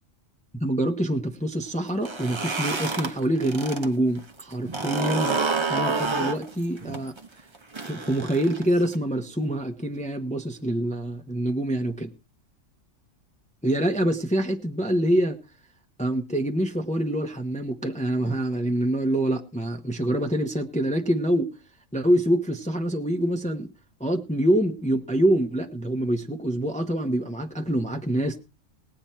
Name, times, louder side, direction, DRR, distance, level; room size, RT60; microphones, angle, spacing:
voice 1, 0.5-5.4 5.7-7.2 7.8-12.1 13.6-15.4 16.0-21.5 21.9-23.7 24.0-28.4, right 1 dB, 5° left, 4 dB, 1.0 m, -25 dB
sound 1, 1.9-3.9 4.2-9.0, right 4 dB, 25° right, 0.9 m, -29 dB
18.5 x 8.9 x 4.4 m, 0.31 s
omnidirectional pair, 1.3 m